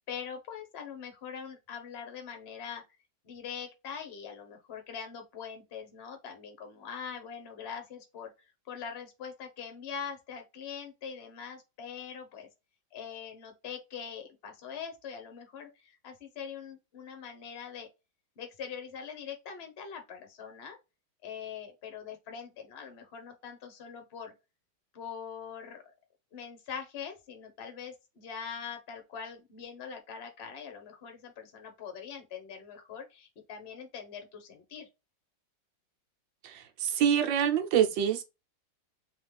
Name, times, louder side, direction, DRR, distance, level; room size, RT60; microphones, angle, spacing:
voice 1, 0.0-2.8 3.2-8.3 8.7-12.5 12.9-17.9 18.4-20.8 21.2-24.3 24.9-25.9 26.3-34.9, left 7 dB, 45° left, 1.0 m, -43 dB
voice 2, 36.4-38.2, right 9 dB, 80° right, 1.4 m, -26 dB
3.2 x 3.1 x 3.3 m
omnidirectional pair, 2.1 m